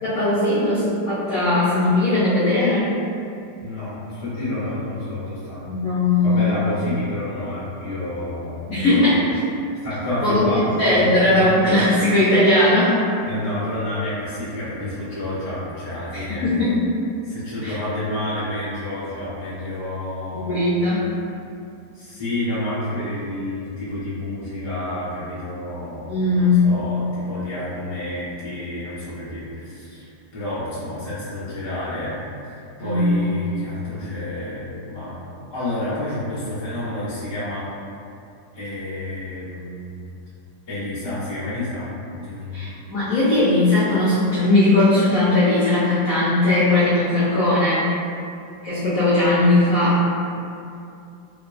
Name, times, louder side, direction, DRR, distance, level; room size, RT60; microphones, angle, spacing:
voice 1, 0.0-3.0 5.6-6.5 8.7-9.4 10.2-13.0 16.1-16.9 17.6-17.8 20.3-21.1 26.1-26.8 32.8-33.3 42.5-47.9 48.6-50.0, left 2 dB, 65° left, -11 dB, 0.8 m, -19 dB
voice 2, 3.6-5.6 6.2-8.5 8.9-9.0 9.8-11.5 13.2-16.5 17.2-20.7 21.9-32.2 32.5-35.1 35.5-37.6 38.5-40.0 40.7-42.7, left 1 dB, 20° left, -13 dB, 0.7 m, -29 dB
3.1 x 2.3 x 2.4 m, 2.6 s
omnidirectional pair, 2.0 m